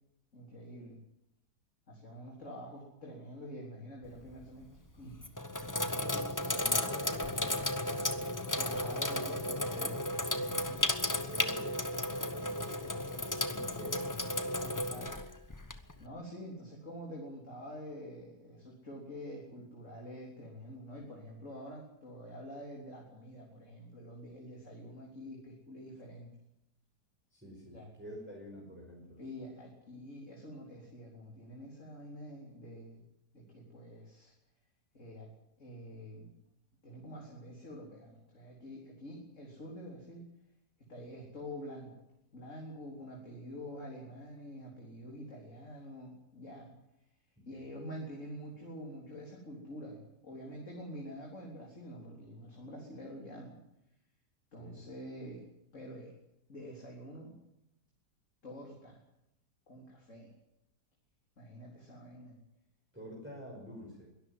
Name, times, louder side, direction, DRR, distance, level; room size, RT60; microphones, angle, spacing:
voice 1, 0.3-1.0 1.9-4.7 4.9-5.2 8.6-10.0 10.3-10.9 14.6-15.2 16.0-26.3 27.7-27.9 29.2-33.0 33.3-34.3 34.9-35.3 35.6-36.3 36.8-40.2 40.9-41.9 42.3-46.7 47.5-53.6 54.5-55.4 55.7-56.1 56.5-57.4 58.4-59.0 59.7-60.3 61.4-62.4, equal, 45° left, -1 dB, 4.0 m, -47 dB
Sink (filling or washing), 4.1-4.5 5.1-16.0, left 1 dB, 15° left, 0.9 m, -34 dB
voice 2, 5.8-9.0 9.4-10.1 11.0-14.9 15.9-16.1 27.3-29.2 47.4-47.7 54.6-54.9 62.9-64.1, equal, 5° right, -3 dB, 5.3 m, -49 dB
22.0 x 13.0 x 9.5 m, 0.83 s
omnidirectional pair, 1.8 m